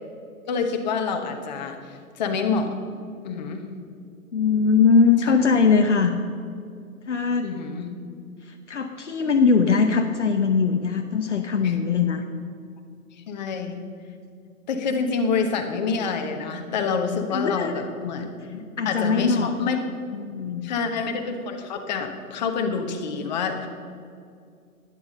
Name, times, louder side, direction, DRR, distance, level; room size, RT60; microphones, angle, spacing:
voice 1, 0.5-2.7 3.2-3.6 5.3-5.4 7.4-7.9 11.6-11.8 13.3-13.8 14.7-19.8 20.6-23.7, left 5 dB, 30° left, 5 dB, 1.2 m, -27 dB
voice 2, 4.3-6.2 7.1-7.5 8.4-12.2 17.3-17.8 18.8-19.5 20.1-20.7, left 5 dB, 55° left, 5 dB, 0.9 m, -21 dB
11.5 x 10.5 x 6.6 m, 2.3 s
figure-of-eight pair, 130°, 44 cm